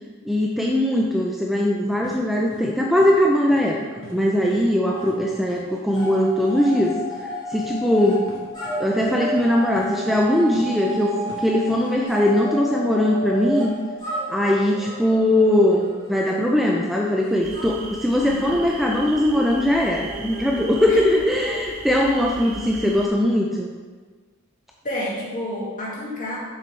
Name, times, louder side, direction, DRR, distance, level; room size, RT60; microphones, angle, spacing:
voice 1, 0.3-3.8 4.1-6.9 7.5-8.3 8.8-13.7 14.3-23.7, left 1 dB, ahead, -1 dB, 0.4 m, -20 dB
sound 1, 2.0-2.2 2.5-2.6 3.0-3.1 3.5-3.6 4.0-4.2 4.5-4.6 5.0-5.1 5.5-5.6 6.0-6.1 6.4-6.5 6.8-6.9 7.1-7.3 7.5-7.6 7.9-8.0 8.3-8.7 9.0-9.5 9.8-11.0 11.3-11.8, left 2 dB, 65° left, 1.4 m, -41 dB
sound 2, 3.5-5.1 5.4-22.5, equal, 20° left, 2.1 m, -34 dB
sound 3, 17.4-23.1, right 4 dB, 70° right, 0.8 m, -38 dB
voice 2, 18.2-18.7 20.9-21.0 24.8-26.4, left 1 dB, 40° left, -5 dB, 2.0 m, -30 dB
6.8 x 6.3 x 3.3 m, 1.4 s
head